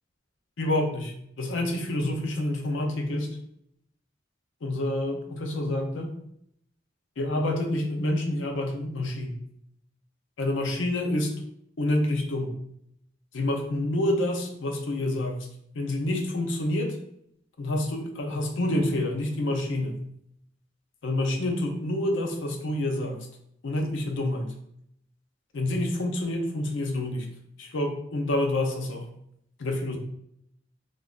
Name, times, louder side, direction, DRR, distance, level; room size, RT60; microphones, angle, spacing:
voice 1, 0.6-3.4 4.6-6.1 7.2-9.4 10.4-11.3 11.8-12.6 13.3-15.5 15.7-17.0 17.6-20.0 21.0-23.3 23.6-24.5 25.5-27.3 27.6-29.1 29.6-30.0, left 1 dB, 85° left, 3 dB, 0.6 m, -28 dB
2.5 x 2.4 x 3.5 m, 0.73 s
head